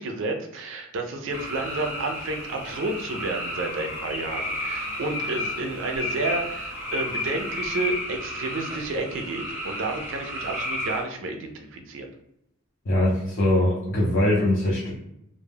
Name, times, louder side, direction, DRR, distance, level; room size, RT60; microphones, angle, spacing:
voice 1, 0.0-12.1, right 2 dB, 70° right, 4 dB, 0.4 m, -31 dB
sound 1, 1.3-7.9, left 3 dB, 85° left, 0.8 m, -36 dB
sound 2, 1.3-11.0, equal, 10° right, 0.6 m, -34 dB
voice 2, 12.9-14.9, left 1 dB, 55° left, -5 dB, 0.5 m, -22 dB
2.2 x 2.0 x 3.3 m, 0.79 s
head